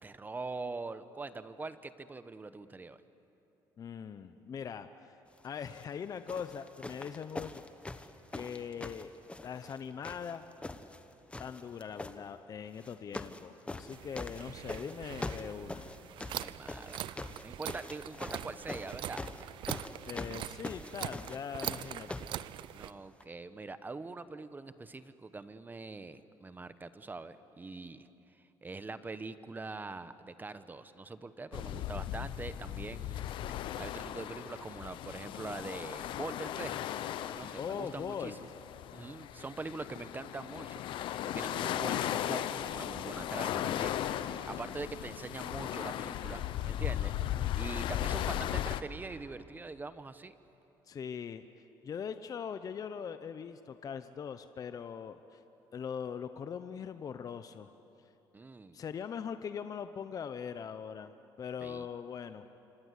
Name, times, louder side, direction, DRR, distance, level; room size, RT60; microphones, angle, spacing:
voice 1, 0.0-3.0 16.3-19.3 22.7-28.1 28.4-36.9 37.3-38.5 38.9-47.1 47.5-50.3 58.3-58.8 61.6-61.9, right 3 dB, 20° right, 12 dB, 1.1 m, -43 dB
voice 2, 3.8-5.1 5.4-7.6 7.9-8.0 8.3-9.1 9.4-10.4 11.4-15.9 20.1-22.1 37.4-38.4 50.9-51.4 51.8-55.4 55.7-57.7 58.7-61.1 61.4-62.4, left 7 dB, 45° left, 10 dB, 0.9 m, -41 dB
sound 1, 5.6-5.9 6.3-9.8 10.0-11.0 11.3-12.2 12.8-13.4 13.7-22.4 23.2-23.3, left 2 dB, 15° left, 1.3 m, -43 dB
sound 2, 13.9-22.9, right 12 dB, 70° right, 0.7 m, -43 dB
sound 3, 31.5-48.8, left 11 dB, 70° left, 0.9 m, -37 dB
26.5 x 25.0 x 8.4 m, 3.0 s
cardioid pair, 95°, 9 cm